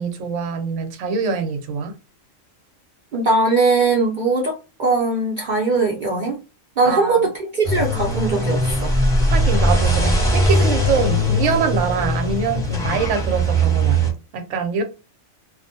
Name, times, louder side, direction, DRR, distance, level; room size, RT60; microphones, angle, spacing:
voice 1, 0.0-1.9 6.8-7.2 9.3-14.0 14.3-14.8, right 5 dB, 70° right, 0.8 m, -24 dB
voice 2, 3.1-6.4 6.8-8.9, right 3 dB, 85° right, 0.4 m, -20 dB
sound 1, 7.6-14.1, right 1 dB, 5° left, 0.7 m, -19 dB
2.4 x 2.1 x 2.6 m
omnidirectional pair, 1.4 m